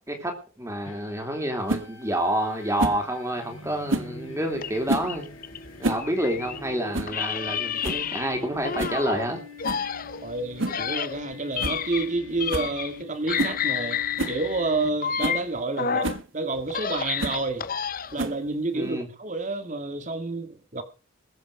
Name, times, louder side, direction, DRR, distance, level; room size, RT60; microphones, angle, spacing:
voice 1, 0.6-5.3 5.8-9.4 18.7-19.1, right 1 dB, 15° right, 3.0 m, -28 dB
sound 1, 0.9-15.3, left 3 dB, 80° left, 4.5 m, -44 dB
sound 2, 1.7-1.9 2.8-3.0 3.9-4.1 4.9-5.1 5.6-6.1 6.3-6.4 6.9-7.2 7.5-7.6 7.8-8.1 8.8-9.0 9.6-9.9 10.6-10.8 11.2-11.3 11.6-11.8 12.1-12.2 12.5-12.7 13.4-13.6 14.2-14.4 14.9-15.0 15.2-15.4 16.0-16.2 17.2-17.4 18.2-18.5, right 2 dB, 65° right, 1.5 m, -29 dB
sound 3, 4.6-6.7 7.1-9.3 9.6-13.0 13.3-16.2 16.6-18.3, left 7 dB, 40° left, 0.7 m, -30 dB
voice 2, 10.2-14.0 14.3-16.1 16.3-17.7 18.1-20.8, right 3 dB, 35° right, 2.0 m, -29 dB
21.0 x 8.5 x 4.9 m
head